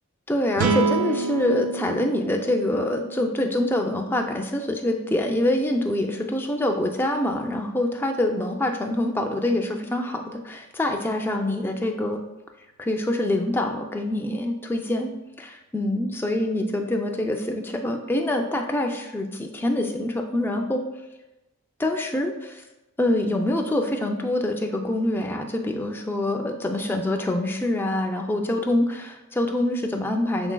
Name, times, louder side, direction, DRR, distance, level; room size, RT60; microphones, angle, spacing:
voice 1, 0.3-12.2 12.8-15.1 15.4-20.8 21.8-22.6 23.0-30.5, left 1 dB, 10° left, 3 dB, 0.3 m, -25 dB
sound 1, 0.6-3.9, right 4 dB, 90° right, 0.4 m, -27 dB
6.1 x 3.8 x 2.2 m, 1.0 s
head